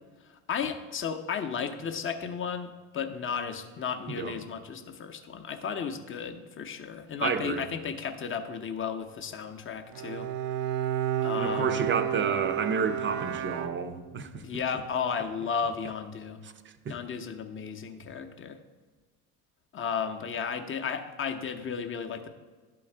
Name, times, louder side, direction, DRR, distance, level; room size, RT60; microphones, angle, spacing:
voice 1, 0.2-10.3 11.2-11.9 14.4-16.4 16.9-18.6 19.7-22.3, left 6 dB, 25° left, 6 dB, 0.7 m, -34 dB
voice 2, 7.2-7.7 11.3-14.4 16.9-17.0, right 5 dB, 25° right, 9 dB, 0.6 m, -30 dB
Bowed string instrument, 9.9-14.3, right 10 dB, 70° right, 0.6 m, -31 dB
11.0 x 3.8 x 4.4 m, 1.4 s
hypercardioid pair, 80°, 46 cm